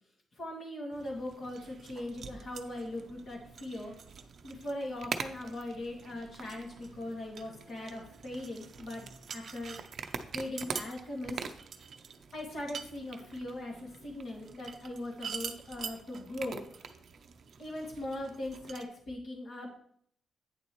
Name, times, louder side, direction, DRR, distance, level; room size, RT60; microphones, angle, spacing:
voice 1, 0.4-3.9 4.4-9.8 10.3-11.4 12.3-16.6 17.6-19.7, left 1 dB, 45° left, -1 dB, 2.2 m, -40 dB
sound 1, 0.9-18.8, right 6 dB, 45° right, 0.6 m, -44 dB
8.9 x 6.9 x 3.0 m, 0.64 s
wide cardioid pair, 165°, 0 cm